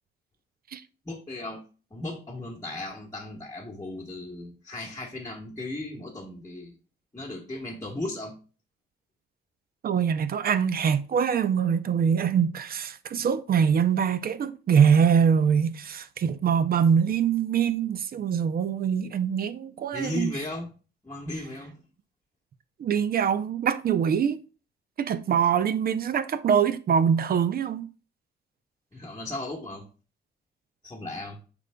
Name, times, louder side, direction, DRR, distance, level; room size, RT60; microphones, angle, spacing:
voice 1, 1.0-1.6 1.9-6.7 7.1-8.3 19.9-20.7 21.0-21.8 28.9-29.8 30.8-31.4, left 1 dB, 15° left, 1.2 m, -36 dB
voice 2, 9.8-20.3 22.8-24.4 25.0-27.9, right 7 dB, 50° right, 0.6 m, -23 dB
8.0 x 5.3 x 2.2 m
cardioid pair, 90°, 20 cm